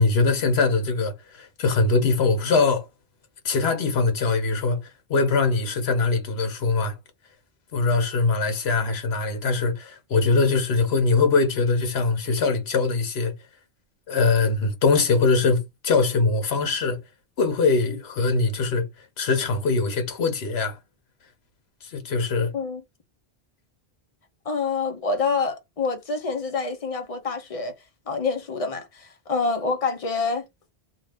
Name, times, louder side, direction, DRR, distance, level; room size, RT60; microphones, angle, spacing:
voice 1, 0.0-2.9 3.4-4.8 5.1-7.0 7.7-13.3 14.1-17.0 17.4-18.9 19.2-20.8 21.8-22.5, left 4 dB, 75° left, 1.1 m, -22 dB
voice 2, 24.5-27.7 28.1-30.4, left 4 dB, 40° left, 0.6 m, -27 dB
2.7 x 2.4 x 3.3 m
omnidirectional pair, 1.1 m